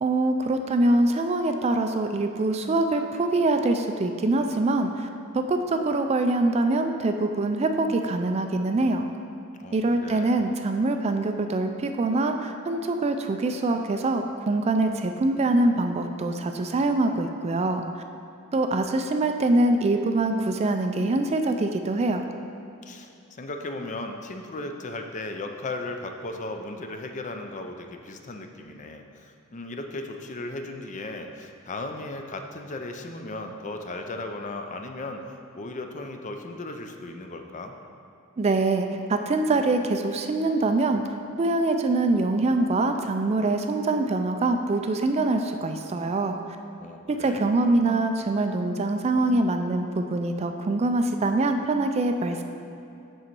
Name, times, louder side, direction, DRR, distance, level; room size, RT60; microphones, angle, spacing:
voice 1, 0.0-5.1 5.3-9.1 9.7-17.8 18.5-22.2 38.4-41.0 41.4-46.4 47.1-52.4, right 2 dB, 30° right, 6 dB, 0.3 m, -24 dB
voice 2, 9.6-10.3 22.8-37.7 46.8-47.6, left 2 dB, 35° left, 5 dB, 0.5 m, -36 dB
6.7 x 6.3 x 4.5 m, 2.6 s
head